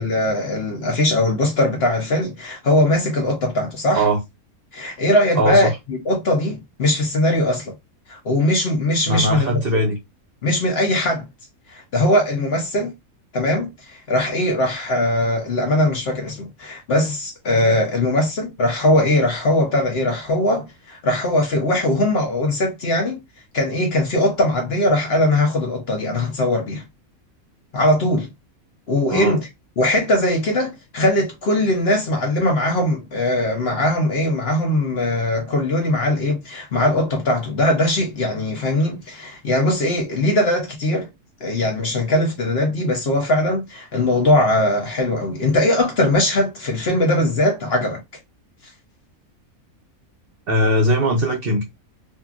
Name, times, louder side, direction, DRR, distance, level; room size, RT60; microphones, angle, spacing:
voice 1, 0.0-4.0 4.7-7.7 8.1-9.6 10.4-11.3 11.7-12.9 13.3-23.2 23.5-26.8 27.7-28.3 28.9-29.5 29.8-41.1 41.4-48.0, left 1 dB, 50° left, 0.9 m, -20 dB
voice 2, 5.3-5.7 9.1-10.0 29.1-29.4 50.5-51.6, equal, 50° right, 0.8 m, -19 dB
2.8 x 2.6 x 2.4 m
omnidirectional pair, 1.5 m